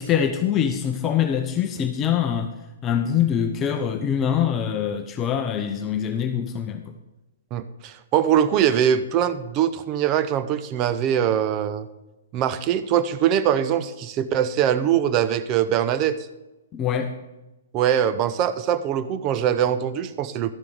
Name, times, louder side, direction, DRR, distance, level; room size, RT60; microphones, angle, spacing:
voice 1, 0.0-2.5 2.8-6.9 16.7-17.2, left 8 dB, 25° left, 0.7 m, -24 dB
voice 2, 7.5-11.9 12.3-16.2 17.7-20.5, right 9 dB, 30° right, 0.7 m, -22 dB
12.0 x 6.8 x 5.0 m
figure-of-eight pair, 120°, 0 cm